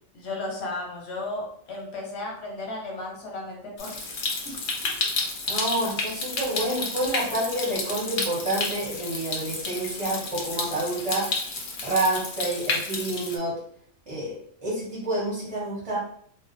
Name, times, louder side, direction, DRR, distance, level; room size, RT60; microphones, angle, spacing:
voice 1, 0.1-4.2, left 2 dB, 60° left, -1 dB, 0.9 m, -34 dB
Stream, 3.8-13.4, left 3 dB, 80° left, 0.4 m, -31 dB
voice 2, 5.5-11.3 11.8-13.6 14.1-16.0, right 1 dB, 40° right, -6 dB, 0.5 m, -28 dB
2.5 x 2.1 x 2.4 m, 0.63 s
omnidirectional pair, 1.4 m